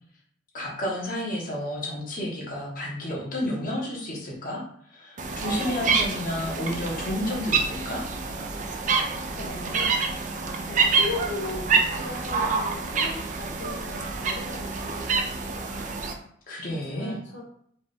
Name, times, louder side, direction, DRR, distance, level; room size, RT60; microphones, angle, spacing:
voice 1, 0.5-4.6 4.9-8.0 16.5-17.2, left 1 dB, 45° left, -4 dB, 1.4 m, -31 dB
sound 1, 5.2-16.1, right 4 dB, 40° right, 0.4 m, -27 dB
voice 2, 9.4-15.9 16.7-17.4, left 3 dB, 70° left, -4 dB, 0.9 m, -38 dB
4.9 x 2.6 x 3.5 m, 0.65 s
head